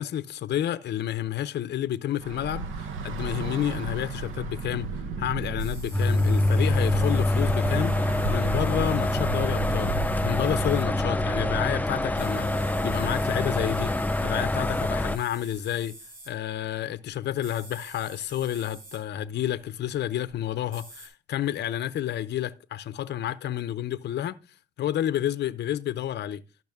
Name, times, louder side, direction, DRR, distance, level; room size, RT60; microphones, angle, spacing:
voice 1, 0.0-4.9 5.2-7.9 8.3-9.9 10.2-13.9 14.2-15.9 16.3-24.4 24.8-26.4, left 11 dB, 60° left, 0.6 m, -30 dB
Bus / Traffic noise roadway noise, 2.2-14.7, right 3 dB, 85° right, 1.0 m, -35 dB
sound 1, 5.6-10.9 12.0-16.3 17.4-19.0 19.5-19.6 20.3-20.4 20.7-21.1, right 1 dB, 70° right, 4.9 m, -47 dB
sound 2, 5.9-15.2, left 1 dB, 10° left, 0.4 m, -25 dB
12.0 x 6.0 x 3.5 m
cardioid pair, 90°, 20 cm